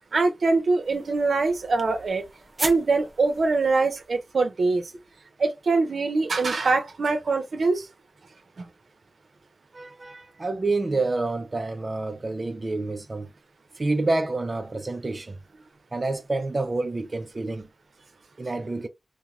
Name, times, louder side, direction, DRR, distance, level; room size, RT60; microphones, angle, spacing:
voice 1, 0.1-2.2 2.6-4.9 5.4-7.9, right 3 dB, 85° right, 0.7 m, -23 dB
sound 1, 0.8-4.4, right 1 dB, 25° right, 0.9 m, -38 dB
voice 2, 9.7-13.3 13.8-15.4 15.9-17.7 18.4-18.9, right 2 dB, 45° right, 0.4 m, -28 dB
2.9 x 2.2 x 2.5 m
wide cardioid pair, 70°, 0 cm